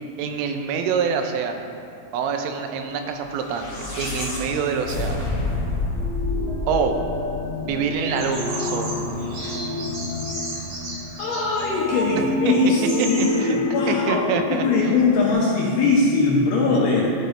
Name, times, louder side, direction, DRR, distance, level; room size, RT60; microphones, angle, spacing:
voice 1, 0.2-1.7 2.1-5.3 6.7-7.0 7.7-9.0 12.2-12.5 13.2-13.6 13.9-14.7, right 6 dB, 85° right, 5 dB, 3.2 m, -26 dB
sound 1, 3.3-7.7, left 3 dB, 55° left, 1.4 m, -28 dB
sound 2, 4.0-15.3, left 2 dB, 70° right, 3.5 m, -29 dB
Bird vocalization bird call bird song, 8.2-11.7 12.4-12.5 12.7-13.3, right 2 dB, 50° right, 2.4 m, -34 dB
voice 2, 11.2-17.1, left 3 dB, 80° left, -4 dB, 2.5 m, -21 dB
13.5 x 5.2 x 3.2 m, 2.5 s
omnidirectional pair, 5.5 m